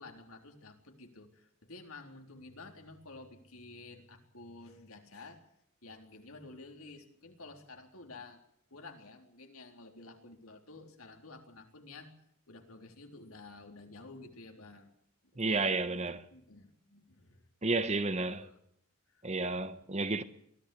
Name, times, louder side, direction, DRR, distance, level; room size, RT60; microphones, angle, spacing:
voice 1, 0.0-5.5 5.8-8.4 8.7-12.1 12.5-14.9 15.4-17.5 18.3-18.6 19.1-19.6, left 3 dB, 75° left, 3.9 m, -51 dB
voice 2, 15.4-16.2 17.6-18.5 19.2-20.2, right 3 dB, 30° right, 1.2 m, -31 dB
23.0 x 15.5 x 8.6 m
head